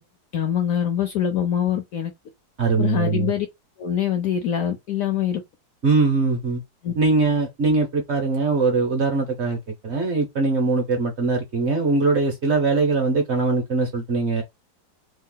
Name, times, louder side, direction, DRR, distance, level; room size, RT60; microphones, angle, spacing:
voice 1, 0.3-2.1 2.8-3.5 3.8-5.4 6.8-6.9, left 9 dB, 70° left, 0.8 m, -24 dB
voice 2, 2.6-3.3 5.8-6.6 7.0-9.6 9.8-14.4, right 3 dB, 50° right, 0.9 m, -21 dB
3.2 x 2.3 x 3.7 m
omnidirectional pair, 1.9 m